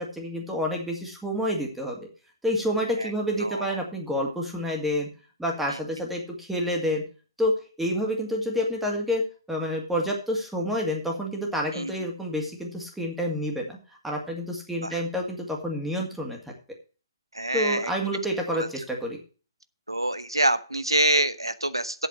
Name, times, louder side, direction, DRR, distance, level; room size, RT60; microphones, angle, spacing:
voice 1, 0.0-2.0 2.4-5.1 5.4-7.0 7.4-13.8 14.0-16.4 17.5-19.2, equal, 5° right, 0 dB, 2.2 m, -28 dB
voice 2, 3.4-3.7 11.7-11.9 14.8-14.9 17.3-17.9 18.5-18.7 19.9-22.1, right 1 dB, 85° right, 13 dB, 0.9 m, -25 dB
8.1 x 6.6 x 7.5 m, 0.37 s
figure-of-eight pair, 135°, 2 cm